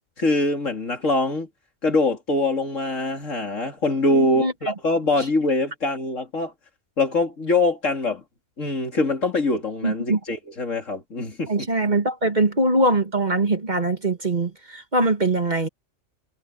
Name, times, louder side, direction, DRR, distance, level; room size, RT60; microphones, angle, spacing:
voice 1, 0.2-1.5 1.8-6.5 7.0-8.2 8.6-11.5, left 2 dB, 85° left, 3.4 m, -23 dB
voice 2, 4.1-4.5 9.8-10.2 11.5-15.7, right 2 dB, 35° right, 2.0 m, -22 dB
omnidirectional pair, 1.3 m